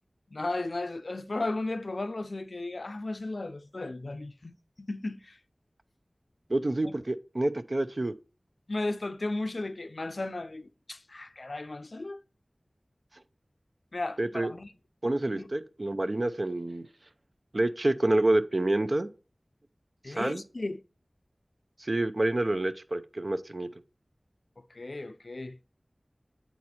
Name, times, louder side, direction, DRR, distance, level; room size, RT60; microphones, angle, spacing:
voice 1, 0.3-5.4 6.8-7.0 8.7-12.2 13.9-14.7 15.4-15.5 20.0-20.8 24.7-25.6, left 2 dB, 65° left, 0.5 m, -35 dB
voice 2, 6.5-8.1 14.2-14.5 15.0-16.9 17.5-19.1 20.1-20.4 21.8-23.7, right 1 dB, 50° right, 0.6 m, -28 dB
8.5 x 4.1 x 4.3 m
wide cardioid pair, 55°, 0 cm